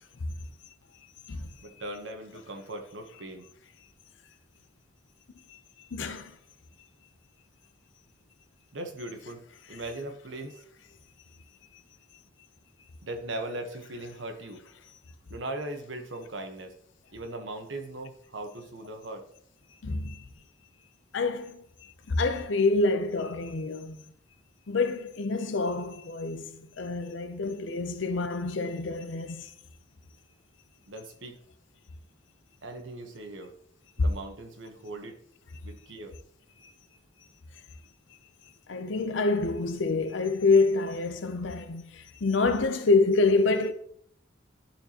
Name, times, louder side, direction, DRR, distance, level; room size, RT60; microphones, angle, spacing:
voice 1, 1.6-3.5 8.7-9.4 9.7-10.6 13.0-14.6 15.3-16.7 17.1-19.2 30.9-31.4 32.6-33.5 34.0-35.2 35.6-36.1, right 2 dB, 80° right, 1.1 m, -39 dB
voice 2, 5.9-6.3 19.8-20.2 21.1-24.0 24.7-29.5 36.6-36.7 38.7-43.7, left 3 dB, 85° left, 0.6 m, -27 dB
11.5 x 4.4 x 2.9 m
head